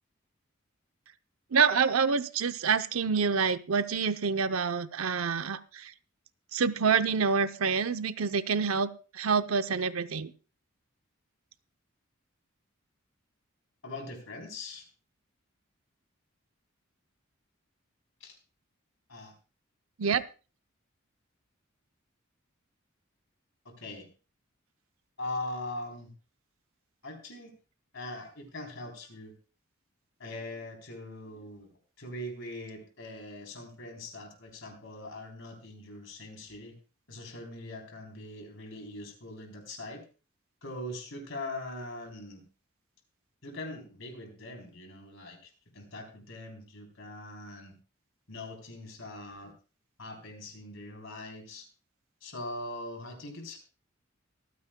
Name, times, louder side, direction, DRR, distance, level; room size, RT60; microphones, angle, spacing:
voice 1, 1.5-5.9 6.5-10.3 20.0-20.2, right 5 dB, 85° right, 11 dB, 0.7 m, -27 dB
voice 2, 13.8-14.9 18.2-18.4 19.1-19.3 23.7-24.1 25.2-26.1 27.0-27.5 27.9-29.3 30.2-31.7 32.0-36.8 37.1-40.0 40.6-42.4 43.4-47.8 48.3-49.5 50.0-51.7 52.2-53.6, left 2 dB, 65° left, 3 dB, 3.7 m, -41 dB
24.5 x 9.4 x 2.3 m, 0.34 s
head